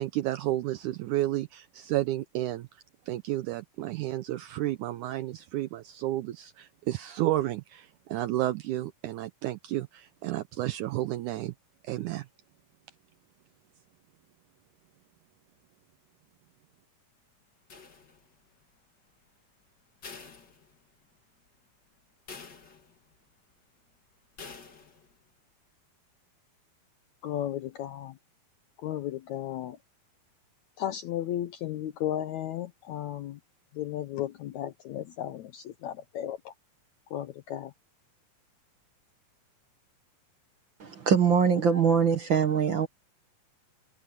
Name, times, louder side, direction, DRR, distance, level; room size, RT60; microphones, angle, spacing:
voice 1, 0.0-11.5 11.8-12.3, right 15 dB, 85° right, 1.8 m, -31 dB
sound 1, 17.7-18.5 20.0-21.2 21.6-21.7 22.3-23.2 24.4-25.2, left 5 dB, 30° left, 2.6 m, -48 dB
voice 2, 27.2-28.2 28.8-29.8 30.8-33.4 33.7-36.5 37.1-37.7, left 12 dB, 80° left, 1.7 m, -34 dB
voice 3, 40.8-42.9, right 6 dB, 55° right, 1.3 m, -23 dB
omnidirectional pair, 4.2 m